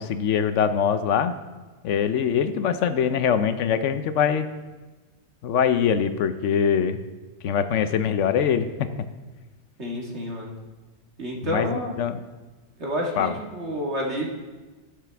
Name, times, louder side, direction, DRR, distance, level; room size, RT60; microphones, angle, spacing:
voice 1, 0.0-1.3 1.8-4.5 5.4-7.0 7.4-8.9 11.4-12.3 13.2-13.3, left 7 dB, 80° left, 11 dB, 1.0 m, -23 dB
voice 2, 9.8-10.5 11.2-12.0 12.8-14.3, equal, 65° right, -2 dB, 2.1 m, -29 dB
17.5 x 6.7 x 3.4 m, 1.2 s
omnidirectional pair, 1.2 m